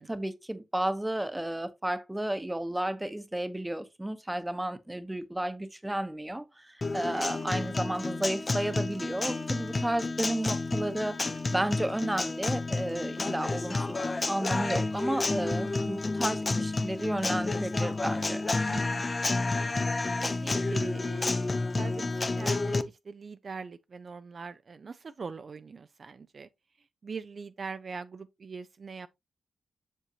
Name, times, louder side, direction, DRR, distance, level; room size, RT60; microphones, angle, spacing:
voice 1, 0.0-14.0 14.3-18.4, right 1 dB, 10° right, 1.0 m, -32 dB
Guitar, 6.8-22.8, left 3 dB, 30° left, 0.7 m, -30 dB
voice 2, 7.1-7.4 18.7-19.7 20.2-26.5 27.0-29.1, right 5 dB, 45° right, 0.5 m, -42 dB
7.4 x 6.6 x 2.9 m
cardioid pair, 100°, 0 cm